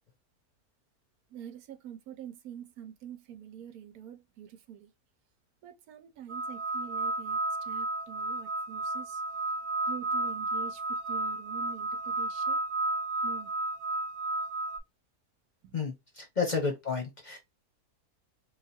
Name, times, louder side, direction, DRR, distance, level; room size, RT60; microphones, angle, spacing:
voice 1, 1.3-4.9 5.6-9.2 9.9-12.6 13.2-13.5 15.6-15.8, right 9 dB, 80° right, 1.2 m, -46 dB
sound 1, 6.3-14.8, right 2 dB, 65° right, 1.0 m, -32 dB
voice 2, 15.7-17.4, left 5 dB, 35° left, 0.8 m, -31 dB
3.4 x 2.4 x 4.1 m
omnidirectional pair, 1.6 m